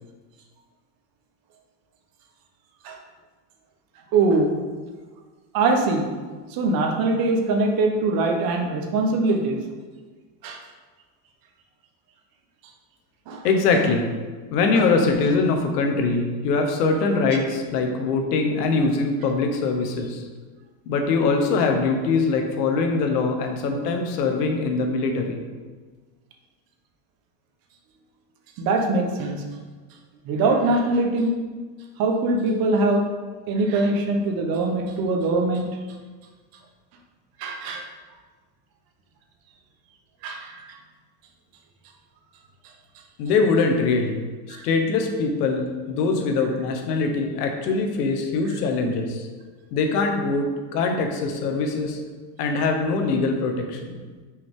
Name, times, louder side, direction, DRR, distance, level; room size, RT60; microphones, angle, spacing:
voice 1, 4.1-4.6 5.5-6.1 6.5-9.6 10.4-10.6 13.3-13.4 28.6-29.4 30.3-31.3 32.0-33.0 33.5-35.7 37.4-37.8 40.2-40.8 44.5-44.6, right 2 dB, 50° right, 3 dB, 1.1 m, -22 dB
voice 2, 13.4-14.1 14.5-20.2 20.9-25.4 43.2-44.2 44.5-49.3 49.7-52.0 52.4-54.0, left 4 dB, 85° left, 3 dB, 1.1 m, -23 dB
6.0 x 4.8 x 3.7 m, 1.4 s
supercardioid pair, 125°, 46 cm